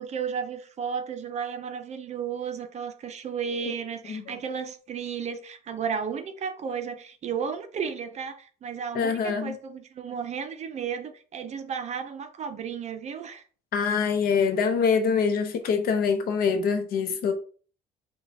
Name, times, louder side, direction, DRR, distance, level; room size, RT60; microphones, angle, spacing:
voice 1, 0.0-13.4, right 7 dB, 40° right, 0.5 m, -33 dB
voice 2, 8.9-9.5 13.7-17.3, left 6 dB, 65° left, 0.7 m, -24 dB
5.8 x 2.3 x 2.7 m
cardioid pair, 110°, 17 cm